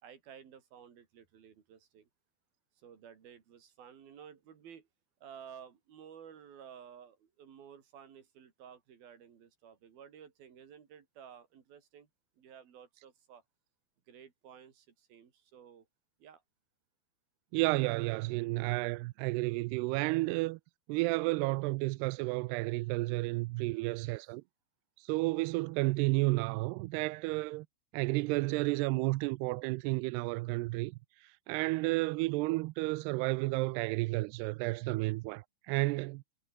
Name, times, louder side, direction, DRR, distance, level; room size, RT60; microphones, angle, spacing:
voice 1, 0.0-2.1 2.8-4.9 5.2-12.1 12.4-13.4 14.1-15.9 16.2-16.4 23.6-24.2, right 8 dB, 55° right, 4.8 m, -54 dB
voice 2, 17.5-20.6 20.9-24.4 25.0-27.7 27.9-31.0 31.2-36.2, right 23 dB, 85° right, 2.4 m, -32 dB
omnidirectional pair, 5.2 m